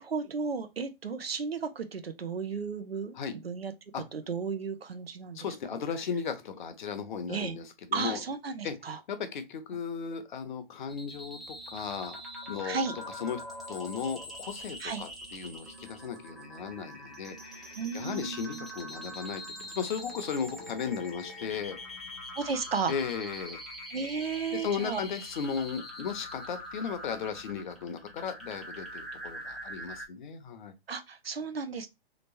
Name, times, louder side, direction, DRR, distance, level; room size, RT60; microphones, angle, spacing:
voice 1, 0.0-3.2 3.4-3.7 4.1-5.5 7.3-7.5 7.9-9.0 12.6-13.0 14.8-15.1 17.8-18.6 22.4-22.9 23.9-25.0 30.9-31.9, right 5 dB, 85° right, 0.7 m, -34 dB
voice 2, 5.3-8.2 8.6-8.7 9.1-12.2 12.5-12.8 13.2-13.4 13.7-21.8 22.9-23.6 24.5-30.7, left 6 dB, 55° left, 0.8 m, -36 dB
sound 1, 10.9-30.1, equal, ahead, 0.5 m, -43 dB
3.3 x 3.0 x 2.6 m
figure-of-eight pair, 130°, 30 cm